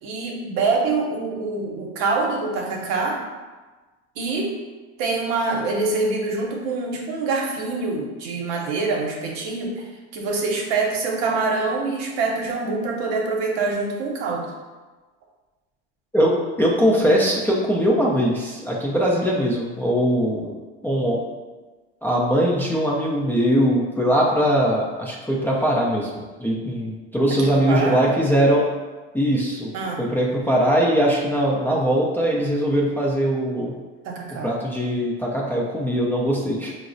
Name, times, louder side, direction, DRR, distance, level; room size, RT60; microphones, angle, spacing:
voice 1, 0.0-3.2 4.2-4.5 5.0-9.9 10.1-14.5 27.4-28.1 29.7-30.0 34.0-34.5, right 3 dB, 70° right, 0 dB, 0.8 m, -25 dB
voice 2, 16.1-20.5 20.8-21.2 22.0-28.7 29.1-29.7 30.0-33.7 34.4-36.8, equal, 5° left, -5 dB, 0.4 m, -21 dB
4.5 x 2.0 x 2.5 m, 1.3 s
supercardioid pair, 105°, 33 cm